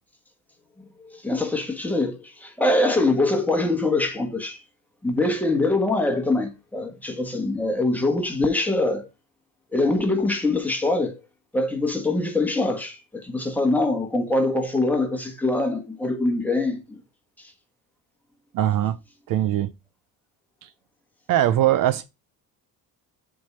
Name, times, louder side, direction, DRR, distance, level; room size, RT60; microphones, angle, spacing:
voice 1, 1.0-4.6 5.0-9.1 9.7-11.2 11.5-17.0, left 2 dB, 5° left, 1.4 m, -23 dB
voice 2, 18.5-19.0 19.3-19.7 20.6-20.7 21.3-22.0, right 12 dB, 60° right, 0.6 m, -21 dB
7.8 x 3.7 x 5.5 m
cardioid pair, 165°, 37 cm